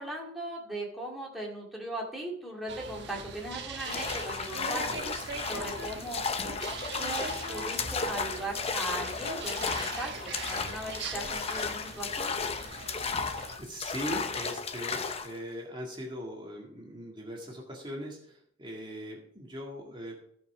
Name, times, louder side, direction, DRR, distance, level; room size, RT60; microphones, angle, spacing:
voice 1, 0.0-5.0 5.4-6.6 7.0-12.4, right 1 dB, ahead, -3 dB, 2.2 m, -38 dB
sound 1, 2.7-13.6, right 4 dB, 60° right, 1.3 m, -41 dB
sound 2, 3.8-15.4, left 5 dB, 30° left, 0.6 m, -34 dB
voice 2, 13.6-20.2, equal, 25° right, -1 dB, 1.9 m, -40 dB
15.5 x 5.7 x 4.9 m, 0.66 s
head